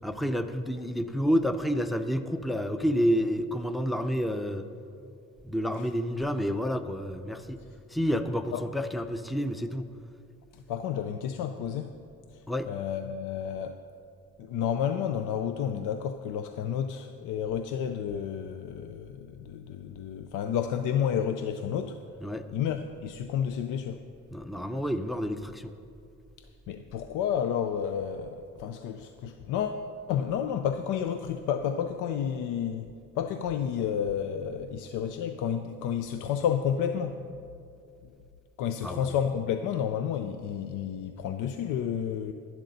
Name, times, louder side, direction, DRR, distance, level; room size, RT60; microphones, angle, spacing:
voice 1, 0.0-4.7 5.4-7.6 7.9-9.9 12.5-12.7 22.2-22.5 24.3-25.7 38.8-39.1, equal, ahead, 9 dB, 0.5 m, -29 dB
voice 2, 10.5-11.9 12.3-13.8 14.4-22.0 22.5-24.0 26.4-32.9 33.1-37.4 38.6-42.3, left 8 dB, 90° left, 8 dB, 0.5 m, -31 dB
11.5 x 11.0 x 4.0 m, 2.5 s
cardioid pair, 90°, 30 cm